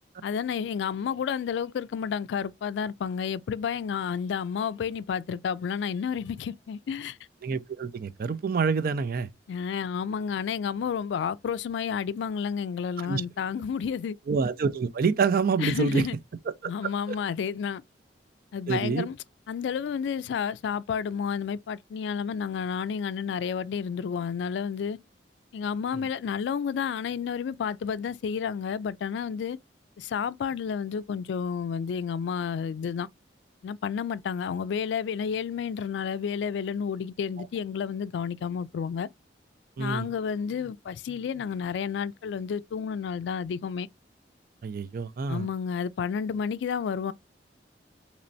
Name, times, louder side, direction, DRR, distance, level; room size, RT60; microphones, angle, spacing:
voice 1, 0.2-7.2 9.5-14.2 15.6-16.2 16.7-17.8 18.5-19.2 19.5-25.0 25.5-29.6 30.0-33.1 33.6-39.1 39.8-43.9 45.3-47.1, left 7 dB, 70° left, 0.3 m, -31 dB
voice 2, 7.4-9.3 13.0-13.2 14.3-16.1 16.5-16.7 17.1-17.2 18.7-19.1 39.8-40.1 44.6-45.5, right 5 dB, 55° right, 0.4 m, -27 dB
4.2 x 3.0 x 2.6 m
head